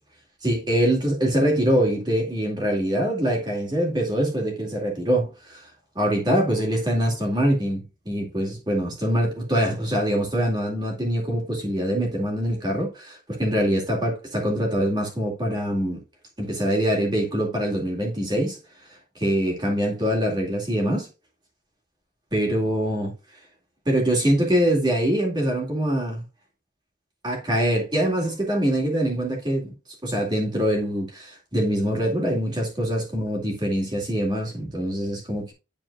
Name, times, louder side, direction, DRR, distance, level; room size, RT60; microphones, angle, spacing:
voice 1, 0.4-5.7 6.0-16.0 16.4-18.6 19.2-21.1 22.3-23.1 23.9-26.2 27.2-29.7 30.0-35.5, equal, 20° right, 2.2 m, -24 dB
10.5 x 4.3 x 2.3 m
head